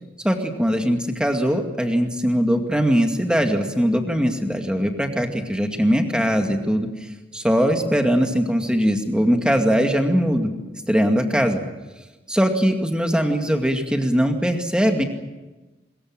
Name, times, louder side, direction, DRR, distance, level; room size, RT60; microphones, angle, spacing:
voice 1, 0.2-6.9 7.3-10.5 10.9-11.6 12.3-15.0, equal, 5° right, 4 dB, 2.2 m, -21 dB
24.0 x 22.0 x 7.6 m, 1.1 s
head